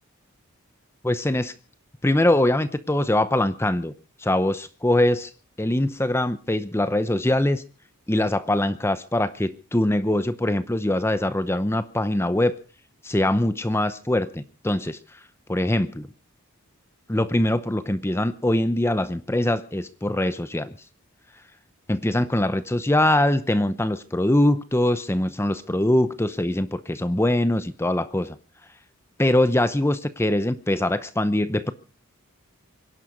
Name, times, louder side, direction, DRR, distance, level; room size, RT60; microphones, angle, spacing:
voice 1, 1.0-1.5 2.0-3.9 4.2-5.3 5.6-7.6 8.1-12.5 13.0-15.0 15.5-16.1 17.1-20.7 21.9-28.3 29.2-31.7, left 1 dB, 10° left, 13 dB, 0.7 m, -23 dB
24.5 x 11.0 x 5.2 m, 0.38 s
head